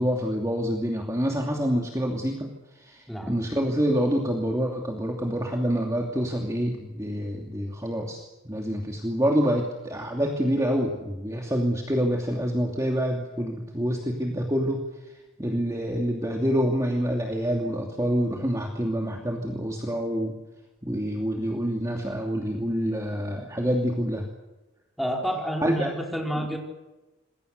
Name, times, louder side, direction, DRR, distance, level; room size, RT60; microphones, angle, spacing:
voice 1, 0.0-15.1 15.4-20.3 20.8-24.3 25.6-25.9 26.4-26.6, equal, 15° right, 0 dB, 2.7 m, -27 dB
voice 2, 25.0-26.6, equal, ahead, -1 dB, 4.9 m, -29 dB
27.5 x 22.0 x 6.7 m, 1.1 s
head